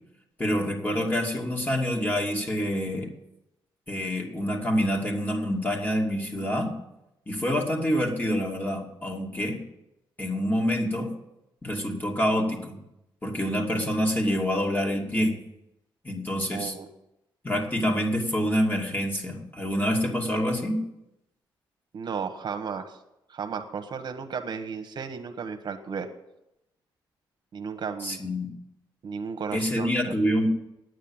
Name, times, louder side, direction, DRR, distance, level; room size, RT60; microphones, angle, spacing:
voice 1, 0.4-3.1 3.9-6.8 7.3-9.7 10.2-11.2 11.6-12.8 13.2-15.4 16.0-16.7 17.4-20.8 28.0-28.5 29.5-30.5, equal, 20° left, 1 dB, 2.6 m, -27 dB
voice 2, 16.5-16.9 21.9-23.0 23.3-26.1 27.5-28.2 29.0-30.1, right 6 dB, 60° right, 6 dB, 1.2 m, -34 dB
9.4 x 9.2 x 8.8 m, 0.87 s
cardioid pair, 95°, 9 cm